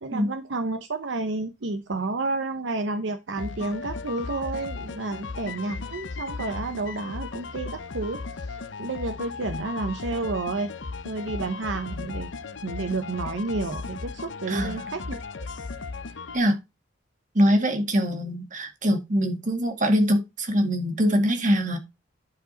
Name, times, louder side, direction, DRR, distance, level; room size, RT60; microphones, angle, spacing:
voice 1, 0.0-10.7 11.0-12.3 12.6-15.5, right 3 dB, 75° right, 0.8 m, -31 dB
sound 1, 3.4-16.4, left 4 dB, 75° left, 0.7 m, -36 dB
voice 2, 14.5-14.8 16.3-16.6 17.3-21.8, equal, 45° right, 2.0 m, -23 dB
11.0 x 4.9 x 4.0 m
head